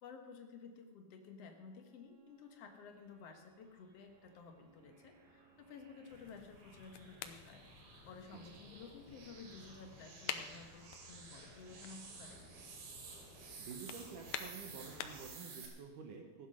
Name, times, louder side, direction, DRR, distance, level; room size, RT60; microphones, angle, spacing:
voice 1, 0.0-12.4, left 5 dB, 60° left, 4 dB, 1.6 m, -54 dB
Bowed string instrument, 1.2-6.5, right 7 dB, 50° right, 4.7 m, -71 dB
sound 1, 4.1-15.7, right 4 dB, 85° right, 4.6 m, -54 dB
sound 2, 6.1-15.4, left 10 dB, 85° left, 2.9 m, -50 dB
voice 2, 13.6-16.5, right 6 dB, 65° right, 4 dB, 2.2 m, -50 dB
15.5 x 10.0 x 6.4 m, 1.4 s
omnidirectional pair, 4.7 m